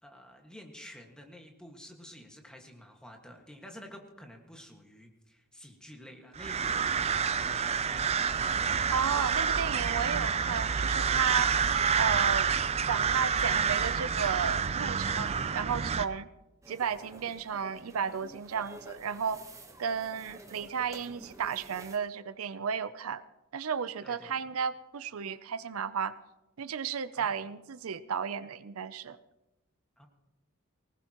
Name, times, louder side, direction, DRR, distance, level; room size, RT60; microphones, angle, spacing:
voice 1, 0.0-7.1 7.4-8.1 24.0-24.5 27.2-27.4 30.0-30.1, equal, 5° left, 2 dB, 1.7 m, -50 dB
sound 1, 6.4-16.1, right 6 dB, 30° right, 0.4 m, -28 dB
voice 2, 8.9-11.5 12.0-12.5 12.9-16.3 16.7-19.4 19.8-23.2 23.5-26.2 26.6-29.2, right 7 dB, 85° right, 15 dB, 0.5 m, -33 dB
sound 2, 16.6-22.0, right 2 dB, 15° right, 1.1 m, -50 dB
19.5 x 19.0 x 3.0 m, 0.97 s
head